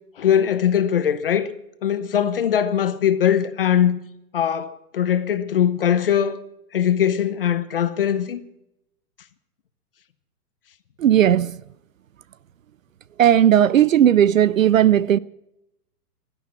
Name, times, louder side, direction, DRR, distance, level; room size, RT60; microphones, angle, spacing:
voice 1, 0.2-1.5 1.8-4.0 4.3-6.4 6.7-8.4, left 9 dB, 35° left, 0.8 m, -21 dB
voice 2, 11.0-11.5 13.2-15.2, right 10 dB, 55° right, 0.5 m, -16 dB
17.0 x 12.0 x 6.0 m
hypercardioid pair, 175°, 48 cm